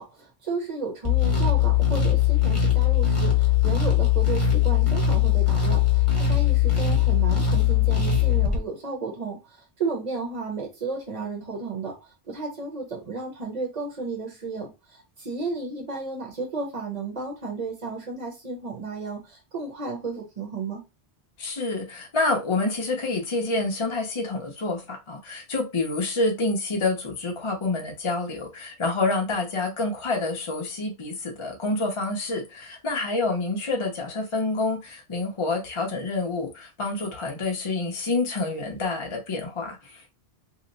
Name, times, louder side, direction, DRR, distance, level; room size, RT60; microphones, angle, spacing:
voice 1, 0.0-11.9 12.3-20.8, right 3 dB, 40° right, 0.9 m, -33 dB
sound 1, 1.0-8.6, left 9 dB, 15° left, 0.9 m, -20 dB
voice 2, 21.4-40.1, left 3 dB, 35° left, 0.6 m, -28 dB
2.9 x 2.0 x 3.9 m
omnidirectional pair, 1.1 m